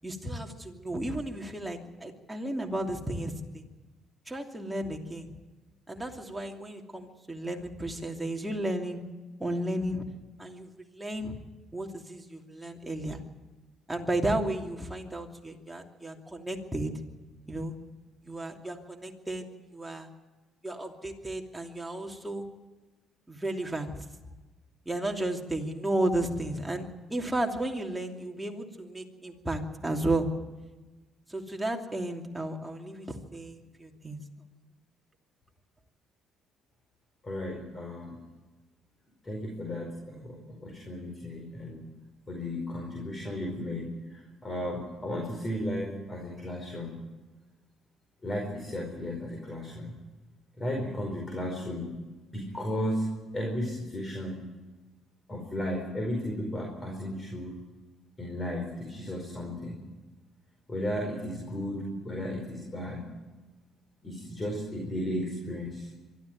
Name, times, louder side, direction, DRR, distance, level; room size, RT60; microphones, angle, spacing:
voice 1, 0.0-3.6 4.3-5.3 5.9-9.0 9.4-10.0 10.4-11.4 11.7-13.2 13.9-16.9 17.5-17.7 18.2-19.5 19.7-20.1 20.6-22.5 23.3-23.9 24.9-30.3 31.3-34.2, right 1 dB, 10° right, 1 dB, 2.8 m, -33 dB
voice 2, 37.2-38.2 39.2-41.8 42.3-46.9 48.2-49.9 50.6-51.9 52.3-54.4 55.3-57.6 58.2-59.8 60.7-63.0 64.0-65.9, left 1 dB, 25° left, 1 dB, 4.9 m, -34 dB
24.0 x 13.0 x 9.3 m, 1.2 s
cardioid pair, 100°, 0 cm